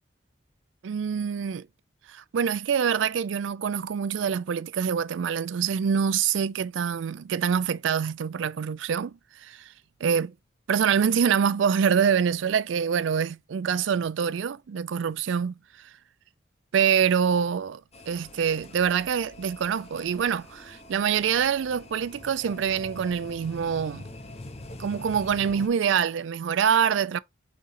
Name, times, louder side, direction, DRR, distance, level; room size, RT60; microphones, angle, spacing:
voice 1, 0.8-1.7 2.1-9.7 10.0-10.3 10.7-15.9 16.7-17.8 18.1-24.1 24.8-27.2, right 7 dB, 80° right, 0.4 m, -25 dB
sound 1, 17.9-25.7, left 2 dB, 35° left, 0.8 m, -45 dB
5.2 x 3.8 x 2.6 m
head